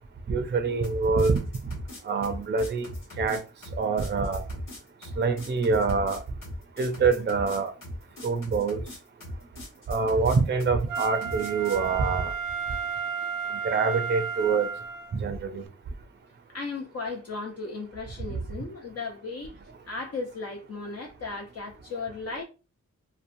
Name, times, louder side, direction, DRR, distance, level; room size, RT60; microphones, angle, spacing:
voice 1, 0.3-1.4 2.0-2.9 3.2-3.4 3.8-4.4 5.2-6.2 6.8-7.7 8.2-8.8 9.9-12.3 13.6-14.7 15.2-15.6, right 4 dB, 35° right, 0.5 m, -25 dB
sound 1, 0.8-11.9, left 1 dB, 80° left, 1.2 m, -39 dB
Wind instrument woodwind instrument, 10.9-15.2 15.7-15.8, right 6 dB, 90° right, 0.5 m, -32 dB
voice 2, 16.5-19.6 19.9-22.4, left 3 dB, 50° left, 0.5 m, -36 dB
2.9 x 2.1 x 2.5 m
wide cardioid pair, 70°, 32 cm